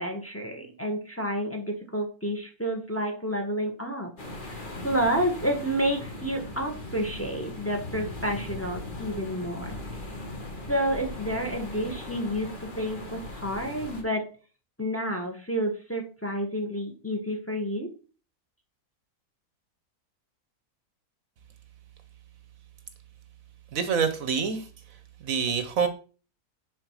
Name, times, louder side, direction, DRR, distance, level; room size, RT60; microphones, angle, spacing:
voice 1, 0.0-4.1 4.4-9.8 10.7-14.3 14.8-17.9, equal, 10° left, 4 dB, 1.5 m, -30 dB
sound 1, 4.2-14.0, left 2 dB, 35° left, 1.7 m, -39 dB
voice 2, 23.7-24.7 25.2-25.9, right 6 dB, 65° right, 9 dB, 1.2 m, -26 dB
10.0 x 4.2 x 4.8 m, 0.36 s
omnidirectional pair, 1.6 m